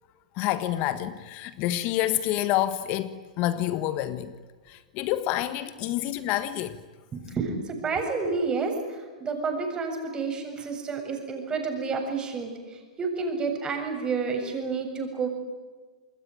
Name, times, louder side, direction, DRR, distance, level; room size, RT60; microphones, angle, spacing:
voice 1, 0.3-4.3 4.7-6.8, left 13 dB, 45° left, 1.4 m, -28 dB
voice 2, 7.1-15.3, right 4 dB, 20° right, 7.4 m, -30 dB
28.0 x 21.5 x 9.2 m
hypercardioid pair, 105°, 4 cm